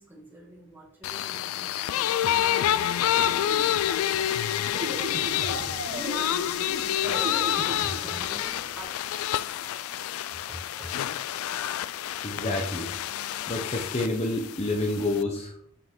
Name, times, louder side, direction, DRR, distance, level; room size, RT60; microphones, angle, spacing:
voice 1, 0.0-4.9 5.6-9.5 10.3-10.9, right 1 dB, 10° right, -4 dB, 2.0 m, -44 dB
sound 1, 1.0-15.2, left 11 dB, 90° left, 0.3 m, -28 dB
sound 2, 2.5-8.8, right 1 dB, 50° right, 1.4 m, -38 dB
voice 2, 12.2-12.9 13.5-15.6, left 2 dB, 30° left, 1 dB, 0.8 m, -28 dB
6.9 x 6.2 x 3.6 m, 0.64 s
head